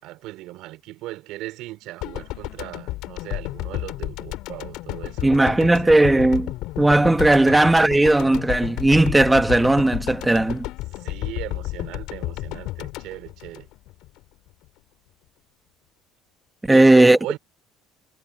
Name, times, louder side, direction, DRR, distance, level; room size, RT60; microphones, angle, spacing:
voice 1, 0.0-6.0 7.3-7.7 11.0-13.7 16.7-17.4, right 17 dB, 70° right, 4.7 m, -38 dB
sound 1, 2.0-14.2 14.5-14.6, left 18 dB, 70° left, 4.8 m, -32 dB
voice 2, 5.2-10.6 16.7-17.2, right 2 dB, 10° right, 1.2 m, -16 dB
supercardioid pair, 105°, 0 cm